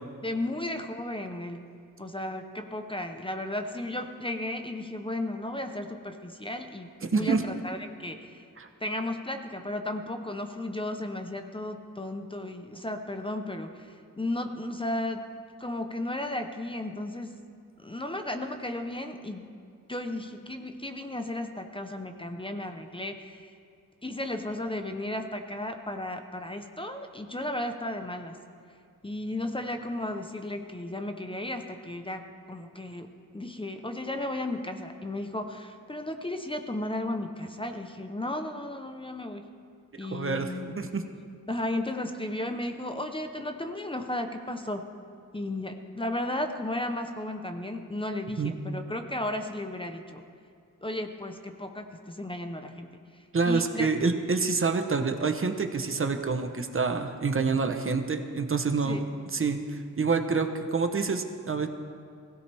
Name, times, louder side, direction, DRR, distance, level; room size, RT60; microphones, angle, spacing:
voice 1, 0.2-1.6 2.0-8.4 8.8-15.2 15.6-17.4 17.8-19.5 19.9-23.5 24.0-28.4 29.0-33.1 33.3-39.4 40.0-40.8 41.5-44.8 45.3-50.2 50.8-52.9 53.1-53.9 58.8-59.1, left 1 dB, 15° left, 5 dB, 0.8 m, -34 dB
voice 2, 7.0-7.4 8.6-8.7 40.1-40.5 40.8-41.0 48.4-48.5 53.3-59.0 59.3-61.7, right 4 dB, 40° right, 6 dB, 1.0 m, -27 dB
21.5 x 16.0 x 3.5 m, 2.3 s
wide cardioid pair, 140°, 32 cm